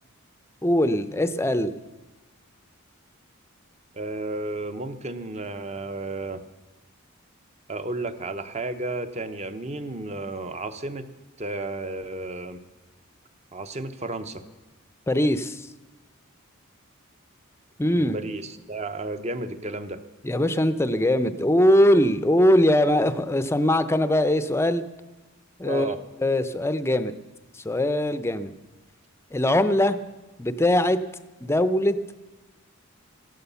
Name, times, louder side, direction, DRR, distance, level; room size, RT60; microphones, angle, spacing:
voice 1, 0.6-1.7 15.1-15.7 17.8-18.2 20.2-24.8 25.6-25.9 26.2-27.1 27.6-28.5 29.3-30.0 30.4-31.0 31.4-32.2, left 1 dB, 10° left, 12 dB, 0.6 m, -21 dB
voice 2, 3.9-6.4 7.7-11.1 11.4-12.6 13.5-14.4 17.9-20.0 25.6-26.0, right 2 dB, 30° right, 10 dB, 0.9 m, -32 dB
15.5 x 11.5 x 6.9 m, 1.2 s
head